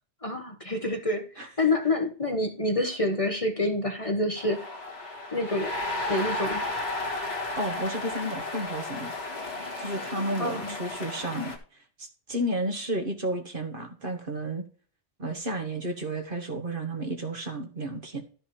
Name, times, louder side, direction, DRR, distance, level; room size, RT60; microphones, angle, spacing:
voice 1, 0.2-4.7 5.3-5.7 6.1-6.6 10.4-10.8, left 2 dB, 30° left, 5 dB, 1.3 m, -27 dB
sound 1, 4.4-11.6, left 2 dB, 65° left, 2.1 m, -33 dB
voice 2, 7.6-9.1 9.8-11.6 12.0-14.7 15.2-18.2, right 1 dB, 50° right, 4 dB, 1.7 m, -32 dB
12.0 x 5.6 x 4.4 m, 0.40 s
omnidirectional pair, 1.2 m